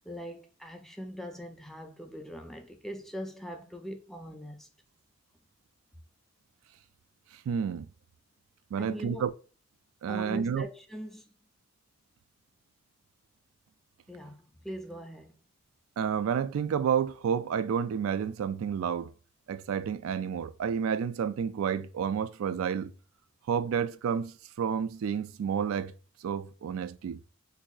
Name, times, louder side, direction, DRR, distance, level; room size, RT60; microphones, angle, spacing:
voice 1, 0.1-4.7 8.8-9.3 10.1-11.3 14.1-15.3, equal, ahead, 0.3 m, -41 dB
voice 2, 7.5-7.9 8.7-9.3 10.0-10.6 16.0-19.1 19.5-22.9 23.5-25.9 26.2-27.2, right 7 dB, 90° right, 0.3 m, -30 dB
3.9 x 2.6 x 2.2 m
head